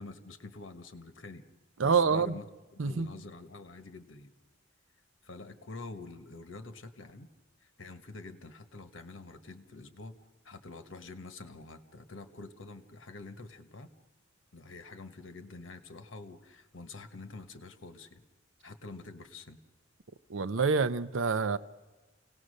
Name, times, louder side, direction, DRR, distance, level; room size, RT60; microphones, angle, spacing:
voice 1, 0.0-1.4 1.8-2.5 2.7-4.3 5.2-7.3 7.6-10.2 10.4-13.9 14.5-18.3 18.6-19.6, left 3 dB, 80° left, 1.3 m, -47 dB
voice 2, 1.8-2.4 2.8-3.1 20.3-21.6, right 5 dB, 85° right, 0.6 m, -27 dB
29.0 x 18.0 x 6.5 m
head